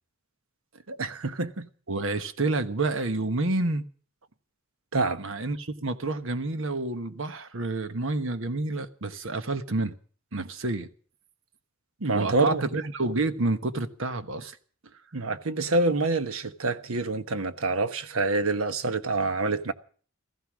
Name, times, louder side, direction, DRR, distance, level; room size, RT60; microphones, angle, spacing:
voice 1, 0.9-1.7 4.9-5.2 12.0-12.8 15.1-19.7, right 3 dB, 90° right, 1.2 m, -27 dB
voice 2, 1.9-3.8 5.2-9.9 10.3-10.9 12.1-14.6, right 2 dB, 65° right, 1.3 m, -29 dB
15.5 x 15.0 x 6.2 m
head